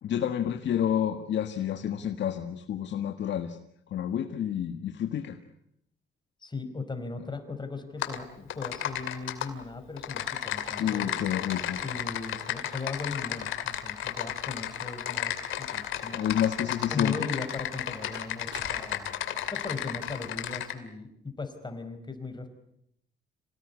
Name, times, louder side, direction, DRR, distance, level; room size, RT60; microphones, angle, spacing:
voice 1, 0.0-3.6 3.9-5.4 10.8-11.8 16.1-17.3, left 9 dB, 65° left, 6 dB, 1.7 m, -29 dB
voice 2, 6.4-11.2 11.8-16.3 16.9-19.1 19.5-22.5, left 3 dB, 20° left, 8 dB, 4.7 m, -38 dB
Typing, 8.0-8.2 8.5-9.5 10.0-20.7, left 11 dB, 80° left, 2.6 m, -33 dB
sound 1, 17.2-17.3 18.1-19.2, right 7 dB, 65° right, 2.7 m, -47 dB
27.0 x 18.0 x 9.7 m, 0.78 s
cardioid pair, 90°, 20 cm